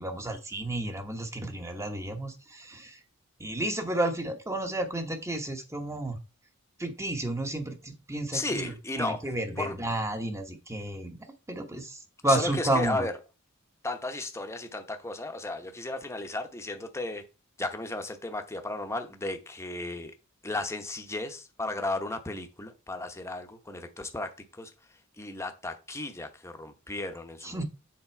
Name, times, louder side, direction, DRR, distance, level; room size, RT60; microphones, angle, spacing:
voice 1, 0.0-3.0 3.4-6.2 6.8-11.2 11.5-13.0 27.4-27.6, right 1 dB, 15° right, 1.1 m, -31 dB
voice 2, 8.3-9.2 9.6-9.8 12.3-13.1 13.8-17.2 17.6-20.1 20.4-27.6, left 2 dB, 15° left, 0.9 m, -34 dB
7.3 x 4.4 x 4.4 m
head